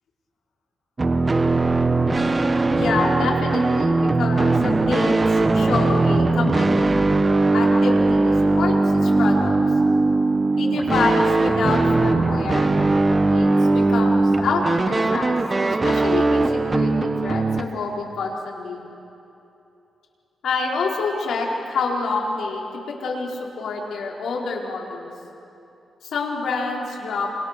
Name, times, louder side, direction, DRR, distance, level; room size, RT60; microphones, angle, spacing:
sound 1, 1.0-17.6, right 2 dB, 25° right, 1.2 m, -19 dB
voice 1, 2.7-5.1 5.5-7.0 7.5-9.5 10.6-12.7 13.1-15.3 15.6-18.8 20.4-25.1 26.0-27.3, left 4 dB, 85° left, -2 dB, 4.5 m, -27 dB
28.0 x 27.5 x 6.8 m, 2.9 s
cardioid pair, 120°, 0 cm